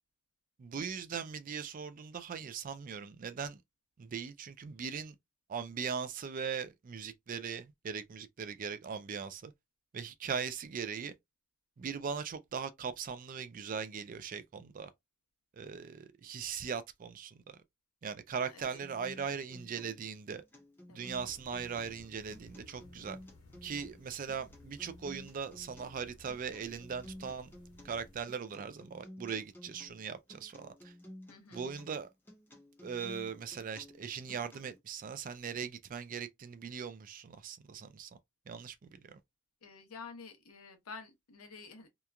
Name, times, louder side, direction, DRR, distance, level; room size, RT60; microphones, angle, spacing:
voice 1, 0.6-3.6 4.0-5.1 5.5-9.5 9.9-11.1 11.8-14.9 15.6-17.6 18.0-20.4 20.9-23.2 23.6-27.5 27.8-30.9 31.5-32.1 32.8-38.1 38.5-39.2, right 6 dB, 40° right, 0.3 m, -40 dB
voice 2, 18.4-18.9 20.9-21.1 31.3-31.7 39.6-41.9, left 4 dB, 85° left, 0.8 m, -50 dB
Acoustic guitar, 18.8-34.8, left 1 dB, 10° left, 0.8 m, -53 dB
sound 1, 21.1-28.2, left 1 dB, 60° left, 1.3 m, -58 dB
2.9 x 2.2 x 2.3 m
head